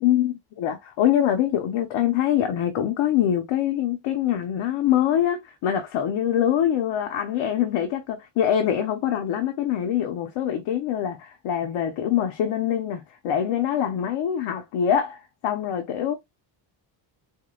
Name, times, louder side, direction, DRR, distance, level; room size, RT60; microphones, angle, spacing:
voice 1, 0.0-16.1, left 10 dB, 85° left, 0.8 m, -24 dB
4.6 x 2.2 x 2.3 m
cardioid pair, 135°, 46 cm